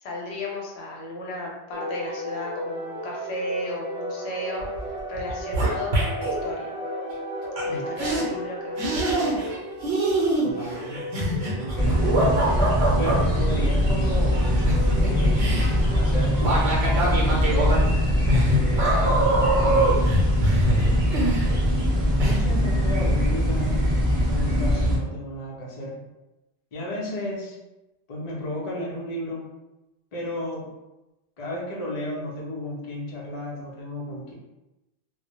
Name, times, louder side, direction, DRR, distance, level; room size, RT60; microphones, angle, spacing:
voice 1, 0.0-6.7 7.6-9.4, left 1 dB, 85° left, -2 dB, 0.9 m, -35 dB
sound 1, 1.7-16.1, equal, 45° right, 0.7 m, -35 dB
sound 2, 4.6-4.9 5.1-6.4 7.6-7.7 8.0-8.2 8.8-9.6 9.8-13.2 14.3-21.9 22.2-22.4, right 1 dB, 80° right, 0.9 m, -24 dB
voice 2, 10.4-11.1 11.3-12.7 13.0-14.4 14.9-17.8 18.4-20.1 22.2-23.8 24.1-26.0 26.7-27.6 28.1-29.5 30.1-30.7 31.4-34.3, left 1 dB, 45° left, -3 dB, 0.6 m, -33 dB
sound 3, 11.8-25.0, equal, 20° right, 1.0 m, -22 dB
2.2 x 2.0 x 2.8 m, 0.98 s
omnidirectional pair, 1.1 m